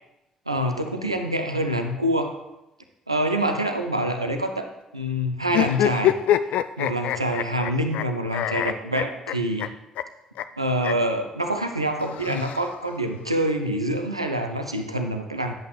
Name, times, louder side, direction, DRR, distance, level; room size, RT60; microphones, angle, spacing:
voice 1, 0.5-2.3 3.1-4.7 4.9-6.2 6.8-9.7 10.6-15.5, right 1 dB, 90° right, 5 dB, 0.5 m, -26 dB
sound 1, 5.5-8.0 8.3-9.7 10.0-10.1 10.4-10.5 10.8-10.9 12.0-13.0, left 12 dB, 60° left, 0.3 m, -25 dB
10.5 x 8.2 x 3.1 m, 0.91 s
figure-of-eight pair, 45°, 3 cm